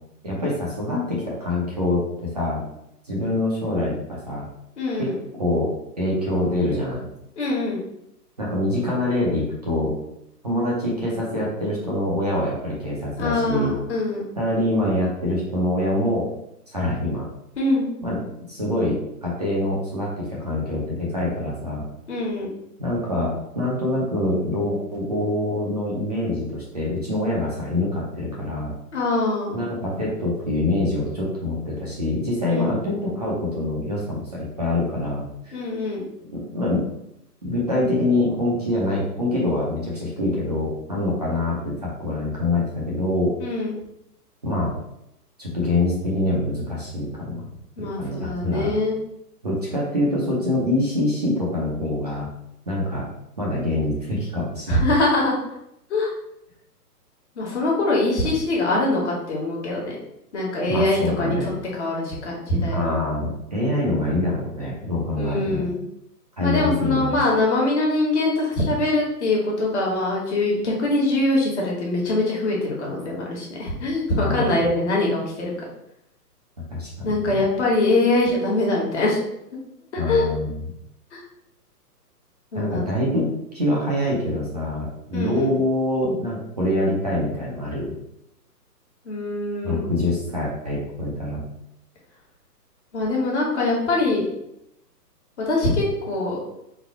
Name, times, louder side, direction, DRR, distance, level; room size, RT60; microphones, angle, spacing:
voice 1, 0.2-2.6 3.0-4.5 5.0-5.1 5.4-5.7 6.0-7.0 8.4-9.9 10.4-13.7 14.4-16.2 16.7-17.3 18.0-21.8 22.8-28.7 29.5-35.5 36.3-36.8 37.4-43.3 44.4-44.7 45.4-47.5 47.8-48.7 49.4-52.3 52.7-53.1 53.4-54.8 60.6-61.5 62.7-65.7 66.4-67.2 74.2-74.6 76.7-77.4 80.0-80.6 82.5-87.9 89.6-91.4, left 1 dB, 25° right, -5 dB, 0.6 m, -25 dB
voice 2, 4.8-5.1 7.4-7.8 13.2-14.2 17.6-17.9 22.1-22.5 28.9-29.6 32.5-32.7 35.5-36.0 43.4-43.8 47.8-49.0 54.7-55.4 55.9-56.1 57.4-59.9 60.3-61.5 61.8-62.9 65.1-65.8 66.4-75.5 77.0-79.2 79.9-80.3 81.1-81.2 82.5-82.9 85.1-85.5 89.0-89.8 92.9-94.2 95.4-96.4, left 2 dB, 45° left, -3 dB, 1.4 m, -23 dB
3.9 x 2.2 x 4.5 m, 0.81 s
hypercardioid pair, 165°, 49 cm